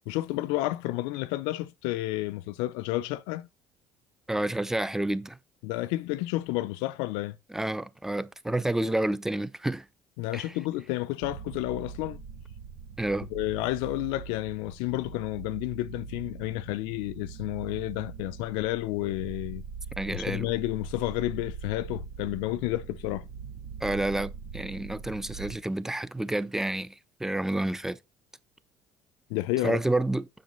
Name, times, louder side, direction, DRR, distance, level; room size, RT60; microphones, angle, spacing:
voice 1, 0.1-3.5 5.6-7.4 10.2-12.2 13.3-19.6 20.1-23.3 29.3-29.8, left 17 dB, 85° left, 0.6 m, -31 dB
voice 2, 4.3-5.4 7.5-9.9 10.3-10.5 13.0-13.3 20.0-20.5 23.8-28.0 29.6-30.3, right 1 dB, 5° right, 0.6 m, -29 dB
sound 1, 11.2-25.6, right 6 dB, 75° right, 1.3 m, -42 dB
7.7 x 6.4 x 4.0 m
supercardioid pair, 95°, 8 cm